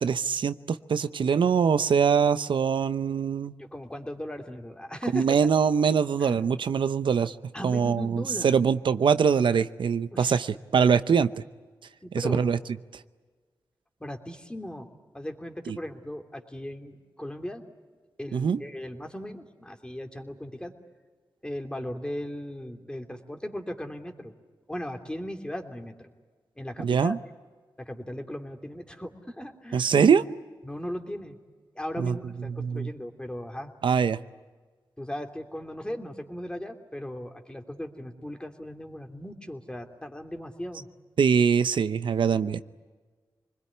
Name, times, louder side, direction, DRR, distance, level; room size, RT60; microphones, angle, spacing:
voice 1, 0.0-3.5 5.1-7.4 7.6-11.3 12.1-12.6 15.7-15.8 18.3-18.6 26.8-27.2 29.7-30.3 32.0-32.2 32.5-32.9 33.8-34.2 41.2-42.6, right 6 dB, 80° right, 12 dB, 0.8 m, -23 dB
voice 2, 3.6-5.5 6.2-6.4 7.5-8.5 10.1-10.4 12.0-12.5 14.0-14.9 15.1-17.6 18.2-20.7 21.4-24.3 24.7-26.1 26.6-27.1 27.8-29.9 30.6-31.3 31.7-33.7 35.0-40.9, left 1 dB, 10° left, 4 dB, 3.0 m, -37 dB
27.0 x 21.0 x 9.7 m, 1.4 s
cardioid pair, 65°, 8 cm